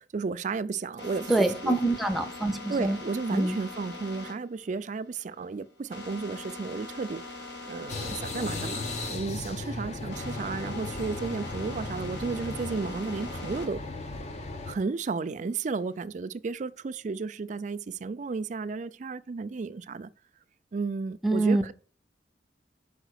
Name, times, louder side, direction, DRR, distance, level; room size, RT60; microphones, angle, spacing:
voice 1, 0.1-1.8 2.7-7.2 7.7-8.8 9.1-13.8 14.7-20.1 20.7-21.7, right 4 dB, 40° right, 0.4 m, -33 dB
sound 1, 1.0-9.1 9.4-13.7 14.2-16.0, left 2 dB, 70° left, 1.6 m, -42 dB
voice 2, 1.3-3.0 3.3-3.6 21.2-21.7, right 2 dB, ahead, 0.6 m, -25 dB
sound 2, 7.9-14.8, left 2 dB, 40° left, 0.8 m, -36 dB
5.0 x 4.9 x 6.3 m
head